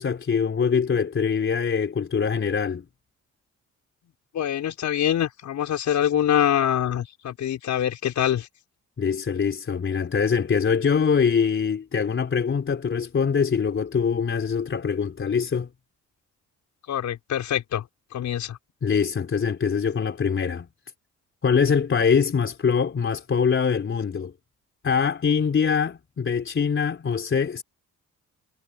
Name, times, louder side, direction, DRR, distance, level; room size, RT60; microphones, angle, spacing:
voice 1, 0.0-2.9 9.0-15.7 18.8-20.7 21.4-24.3 24.8-27.6, left 6 dB, 40° left, 3.6 m, -23 dB
voice 2, 4.3-8.5 16.9-17.8 18.1-18.6, left 10 dB, 70° left, 5.3 m, -24 dB
cardioid pair, 90°, 30 cm